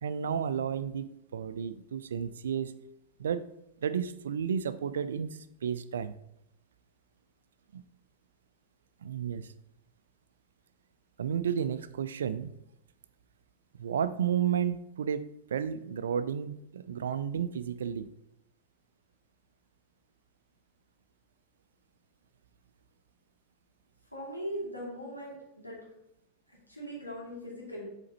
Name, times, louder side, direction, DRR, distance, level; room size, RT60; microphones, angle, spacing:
voice 1, 0.0-2.8 3.2-3.4 3.8-6.1 7.7-7.8 9.0-9.5 11.2-12.5 13.8-18.1, right 8 dB, 65° right, 13 dB, 0.4 m, -32 dB
voice 2, 24.1-25.8 26.7-27.8, equal, 85° left, -5 dB, 2.6 m, -39 dB
7.3 x 4.2 x 4.2 m, 0.80 s
figure-of-eight pair, 90°, 0 cm